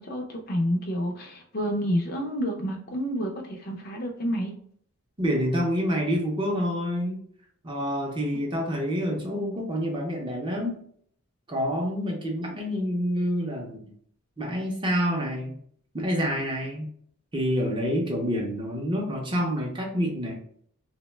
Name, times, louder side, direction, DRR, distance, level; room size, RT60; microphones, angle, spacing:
voice 1, 0.0-4.5, equal, 45° left, 3 dB, 0.4 m, -29 dB
voice 2, 5.2-7.2 7.6-10.8 11.5-13.9 14.4-15.6 15.9-16.9 17.3-20.4, equal, 20° right, 0 dB, 0.5 m, -27 dB
2.7 x 2.1 x 3.2 m, 0.62 s
head